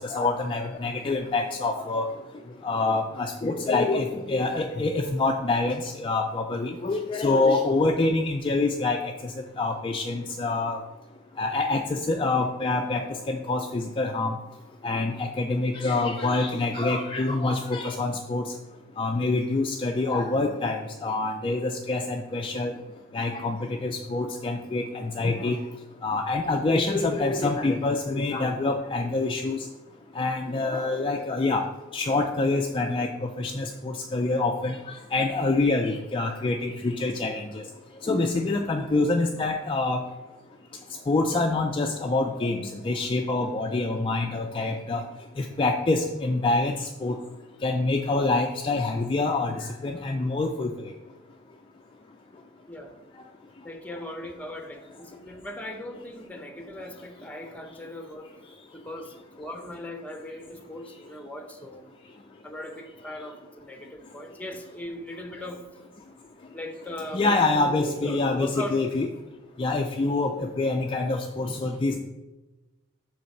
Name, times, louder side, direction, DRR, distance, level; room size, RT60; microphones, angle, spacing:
voice 1, 0.0-2.1 2.6-9.0 9.2-9.3 9.6-10.8 11.4-14.3 14.8-18.4 19.0-22.7 23.1-25.6 26.0-29.6 30.2-31.6 31.9-34.8 35.1-37.6 38.0-40.0 41.1-45.0 45.4-47.2 47.6-50.7 67.1-69.1 69.6-72.0, left 3 dB, 25° left, 2 dB, 0.4 m, -26 dB
voice 2, 53.6-58.3 58.7-61.9 62.4-65.6 66.5-68.8 70.3-70.4, left 1 dB, 5° left, 5 dB, 0.8 m, -39 dB
6.7 x 3.9 x 6.5 m, 1.1 s
head